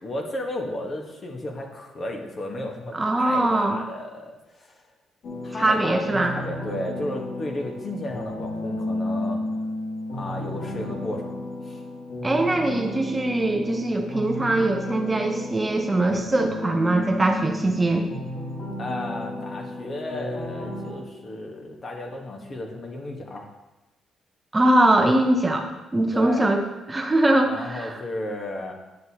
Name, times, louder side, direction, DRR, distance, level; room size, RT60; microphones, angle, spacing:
voice 1, 0.0-4.8 5.4-9.4 10.1-11.8 18.8-23.5 26.0-26.5 27.4-28.7, left 1 dB, 40° left, 1 dB, 1.3 m, -33 dB
voice 2, 2.9-3.8 5.6-6.4 12.2-18.1 24.5-26.6 26.9-28.0, right 1 dB, 20° right, 4 dB, 0.7 m, -22 dB
sound 1, 5.2-20.9, left 1 dB, 65° left, 1.8 m, -33 dB
9.1 x 6.3 x 2.9 m, 1.1 s
cardioid pair, 90°, 0 cm